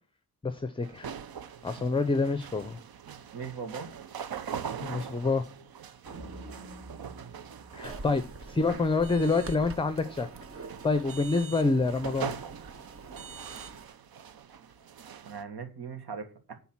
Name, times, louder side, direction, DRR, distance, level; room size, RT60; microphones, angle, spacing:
voice 1, 0.4-1.1 1.6-2.8 4.8-5.4 7.7-10.3 10.8-12.3, left 3 dB, 15° left, 0.6 m, -27 dB
sound 1, 0.8-15.4, right 7 dB, 70° right, 0.8 m, -42 dB
voice 2, 3.3-3.9 9.1-9.2 15.2-16.5, right 5 dB, 90° right, 1.7 m, -39 dB
sound 2, 6.1-8.5, right 2 dB, 55° right, 2.5 m, -47 dB
sound 3, 7.8-13.9, right 3 dB, 35° right, 0.8 m, -45 dB
10.5 x 3.9 x 7.2 m
wide cardioid pair, 155°, 37 cm